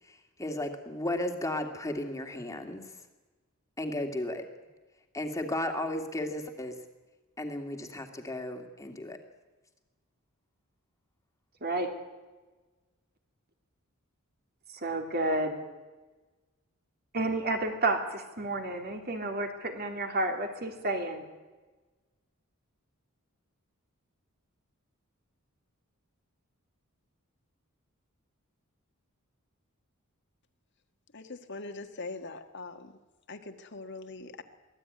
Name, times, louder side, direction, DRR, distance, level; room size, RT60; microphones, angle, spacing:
voice 1, 0.1-2.8 3.8-4.4 5.1-6.8 7.4-9.2, left 1 dB, 15° left, 4 dB, 2.2 m, -34 dB
voice 2, 14.7-15.6 17.1-21.3, right 2 dB, 45° right, 4 dB, 3.0 m, -31 dB
voice 3, 31.1-32.9 33.3-34.4, left 3 dB, 55° left, 6 dB, 1.6 m, -42 dB
23.5 x 15.5 x 9.5 m, 1.2 s
head